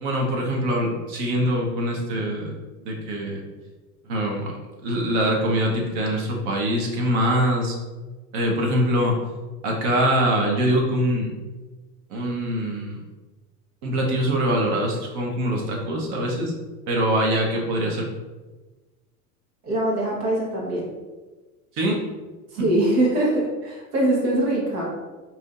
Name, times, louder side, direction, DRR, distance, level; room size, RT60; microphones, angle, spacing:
voice 1, 0.0-2.6 2.8-3.4 4.0-4.5 4.8-7.8 8.3-9.2 9.6-11.3 12.1-13.0 13.8-16.5 16.9-18.1 21.8-22.1 22.6-22.7, equal, 55° right, 0 dB, 1.2 m, -23 dB
voice 2, 19.6-20.9 22.6-24.9, right 1 dB, 75° right, -4 dB, 1.4 m, -22 dB
4.7 x 2.9 x 2.5 m, 1.2 s
hypercardioid pair, 95°, 47 cm